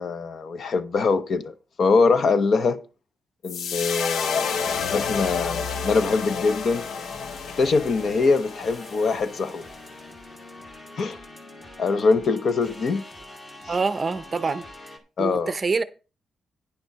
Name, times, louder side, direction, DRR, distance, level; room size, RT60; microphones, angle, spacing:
voice 1, 0.0-2.8 3.4-6.9 7.6-9.6 11.0-11.2 11.8-13.0 15.2-15.5, left 4 dB, 50° left, 0.8 m, -23 dB
sound 1, 3.4-9.8, left 6 dB, 80° left, 0.8 m, -30 dB
sound 2, 4.4-15.0, left 1 dB, 25° left, 1.5 m, -44 dB
voice 2, 13.7-14.6 15.2-15.8, right 4 dB, 30° right, 0.6 m, -25 dB
9.9 x 6.9 x 4.7 m
wide cardioid pair, 165°, 0 cm